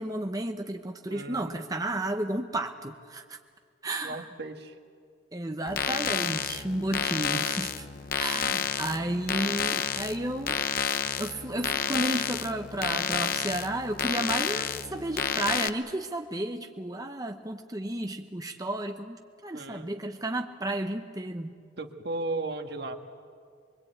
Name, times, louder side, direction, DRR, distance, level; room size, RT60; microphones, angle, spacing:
voice 1, 0.0-3.4 3.8-4.3 5.3-7.9 8.2-10.6 11.2-21.6, right 1 dB, 20° right, 5 dB, 0.8 m, -32 dB
voice 2, 1.1-1.6 4.0-4.7 19.5-19.9 21.8-23.0, right 2 dB, 60° right, 6 dB, 1.6 m, -35 dB
sound 1, 5.7-15.7, left 7 dB, 50° left, 0.8 m, -30 dB
25.0 x 23.0 x 8.9 m, 2.2 s
head